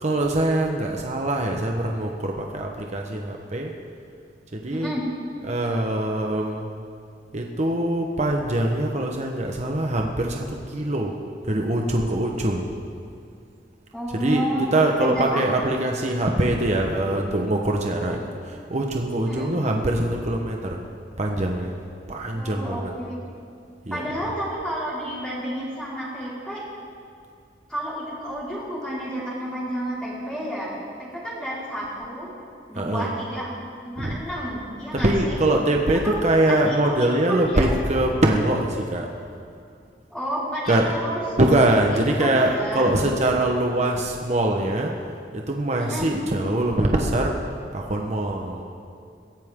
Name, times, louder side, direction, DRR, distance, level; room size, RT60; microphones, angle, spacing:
voice 1, 0.0-3.7 4.5-5.0 5.4-6.7 7.3-11.1 11.4-12.6 14.2-14.5 14.7-20.8 21.2-21.7 22.1-22.9 23.8-24.2 32.8-33.2 34.0-34.2 34.9-39.1 40.7-40.9 41.4-44.9 45.3-47.4 47.7-48.6, right 1 dB, 40° right, 1 dB, 1.1 m, -23 dB
voice 2, 4.7-5.0 13.9-14.6 15.0-15.5 16.5-16.6 18.1-18.2 19.2-19.5 22.3-23.2 23.9-26.6 27.7-32.3 32.7-33.6 33.8-35.4 36.0-36.2 36.6-37.7 40.1-41.2 41.6-42.9 45.8-46.1, equal, 5° left, -10 dB, 4.8 m, -31 dB
23.0 x 16.0 x 3.8 m, 2.4 s
head